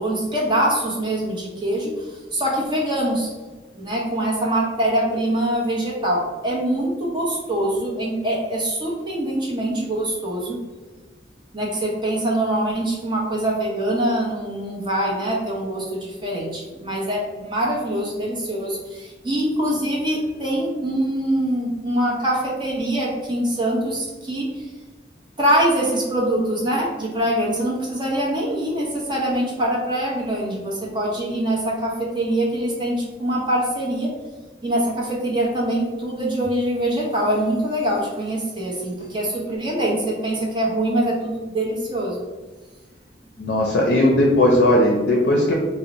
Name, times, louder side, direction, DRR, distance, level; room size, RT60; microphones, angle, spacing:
voice 1, 0.0-3.3 3.7-10.6 11.5-24.7 25.4-34.1 34.6-42.2, right 1 dB, 25° right, -3 dB, 0.7 m, -24 dB
voice 2, 43.4-45.5, left 1 dB, 60° left, 0 dB, 0.5 m, -17 dB
2.7 x 2.0 x 3.9 m, 1.3 s
head